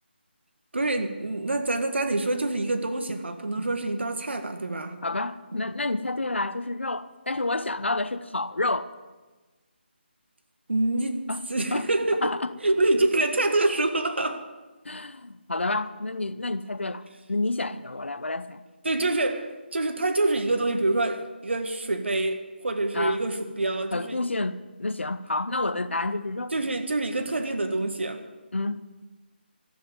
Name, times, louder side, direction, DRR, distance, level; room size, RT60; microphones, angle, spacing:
voice 1, 0.7-5.0 10.7-11.2 11.5-12.3 12.6-14.4 18.8-24.2 26.5-28.3, right 2 dB, 75° right, 1.8 m, -26 dB
voice 2, 5.0-8.9 11.3-11.4 11.7-11.9 12.2-12.5 14.8-17.0 17.3-18.6 22.9-23.2 23.9-26.5 28.5-28.8, left 2 dB, 90° left, 0.9 m, -29 dB
14.0 x 7.7 x 9.5 m
figure-of-eight pair, 160°, 6 cm